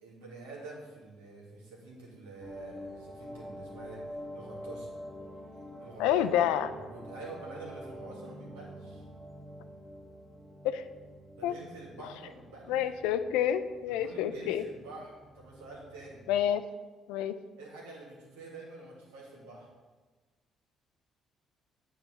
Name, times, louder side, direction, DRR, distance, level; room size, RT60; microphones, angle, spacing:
voice 1, 0.0-4.0 4.3-4.9 5.8-6.2 6.7-9.0 11.3-12.8 13.9-16.2 17.6-19.7, right 2 dB, 80° right, -3 dB, 1.7 m, -47 dB
sound 1, 2.4-16.4, equal, 15° left, 1.4 m, -47 dB
voice 2, 6.0-6.7 10.7-10.8 11.4-11.5 12.7-14.6 16.3-16.6 17.1-17.3, left 10 dB, 75° left, 11 dB, 0.3 m, -28 dB
8.8 x 4.1 x 4.1 m, 1.3 s
hypercardioid pair, 50°, 0 cm